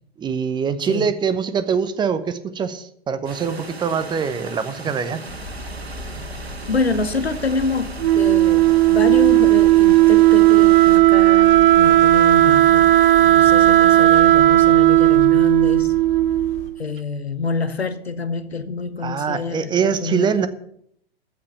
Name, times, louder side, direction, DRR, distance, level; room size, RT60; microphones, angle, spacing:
voice 1, 0.2-5.2 19.0-20.5, right 6 dB, 15° right, 0.8 m, -23 dB
sound 1, 3.2-11.0, right 3 dB, 80° right, 1.6 m, -37 dB
sound 2, 5.3-16.7, left 1 dB, 20° left, 3.5 m, -36 dB
voice 2, 6.7-12.9 13.2-15.9 16.8-20.5, left 4 dB, 85° left, 1.0 m, -26 dB
Wind instrument woodwind instrument, 8.0-16.7, right 15 dB, 60° right, 0.6 m, -14 dB
14.5 x 5.7 x 8.4 m
figure-of-eight pair, 105°, 31 cm